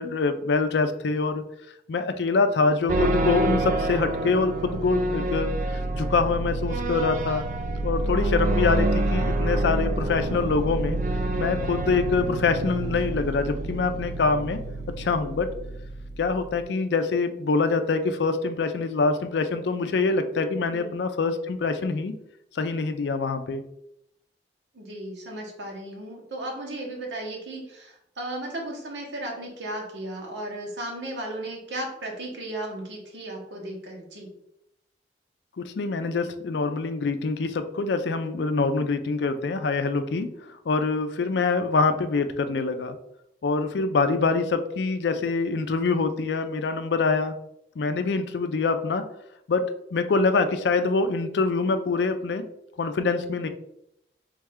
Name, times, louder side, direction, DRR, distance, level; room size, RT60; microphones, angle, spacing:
voice 1, 0.0-1.4 1.9-5.5 5.9-7.5 7.8-11.0 11.4-14.6 15.0-15.5 16.2-22.2 22.5-23.6 35.6-40.3 40.7-43.0 43.4-47.3 47.8-49.0 49.5-49.6 49.9-52.5 52.8-53.5, left 4 dB, 75° left, 8 dB, 0.4 m, -25 dB
sound 1, 2.9-16.6, right 2 dB, 45° right, 0.3 m, -27 dB
voice 2, 24.7-34.3, right 1 dB, 90° right, 0 dB, 1.1 m, -35 dB
3.5 x 3.3 x 3.5 m, 0.79 s
head